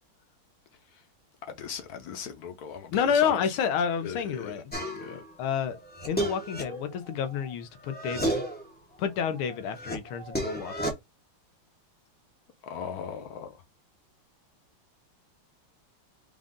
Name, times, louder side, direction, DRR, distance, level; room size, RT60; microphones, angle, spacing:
voice 1, 1.5-3.5 4.0-4.6 5.0-5.2 12.6-13.6, left 7 dB, 60° left, 1.1 m, -38 dB
voice 2, 2.9-5.8 6.1-8.4 9.0-10.9, left 7 dB, 90° left, 1.7 m, -29 dB
sound 1, 4.7-5.2 5.7-7.5 7.8-8.7 9.1-10.9, right 1 dB, 10° left, 0.4 m, -33 dB
5.3 x 2.5 x 3.6 m
omnidirectional pair, 2.3 m